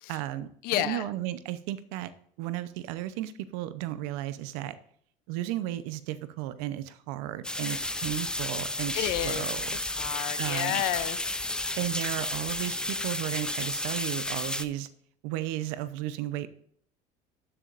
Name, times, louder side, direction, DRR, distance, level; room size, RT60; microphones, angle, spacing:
voice 1, 0.1-0.5 0.8-2.1 2.4-4.7 5.3-9.8 10.4-10.8 11.8-14.9 15.2-16.5, right 14 dB, 90° right, 13 dB, 0.8 m, -34 dB
voice 2, 0.6-1.0 8.9-11.2, left 14 dB, 70° left, 13 dB, 0.6 m, -31 dB
sound 1, 7.4-14.6, left 1 dB, 5° left, 0.5 m, -32 dB
12.5 x 7.1 x 2.5 m, 0.64 s
cardioid pair, 125°, 16 cm